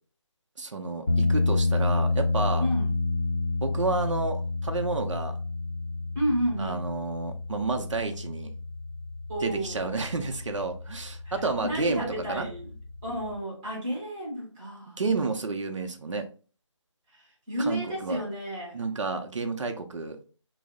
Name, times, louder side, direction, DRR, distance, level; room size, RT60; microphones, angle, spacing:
voice 1, 0.6-2.7 3.6-5.3 6.6-8.5 9.4-12.5 15.0-16.3 17.6-18.2 18.7-20.2, right 3 dB, 70° right, 0.6 m, -30 dB
sound 1, 1.1-13.4, left 3 dB, 40° left, 0.5 m, -30 dB
voice 2, 2.6-2.9 6.1-6.9 9.3-9.9 11.2-12.7 13.0-15.0 17.1-18.8, equal, 10° right, 0.7 m, -31 dB
3.1 x 2.0 x 3.5 m
figure-of-eight pair, 170°, 16 cm